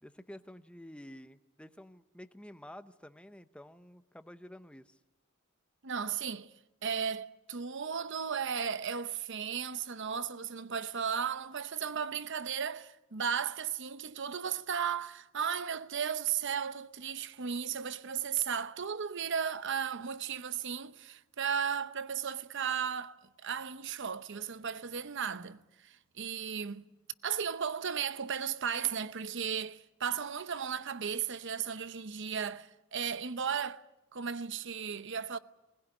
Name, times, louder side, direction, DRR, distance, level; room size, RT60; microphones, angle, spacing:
voice 1, 0.0-5.0, left 1 dB, 5° left, 0.8 m, -50 dB
voice 2, 5.8-6.5 6.8-23.2 23.4-26.8 27.2-33.8 34.1-35.4, right 7 dB, 55° right, 0.8 m, -35 dB
20.5 x 20.0 x 9.9 m
head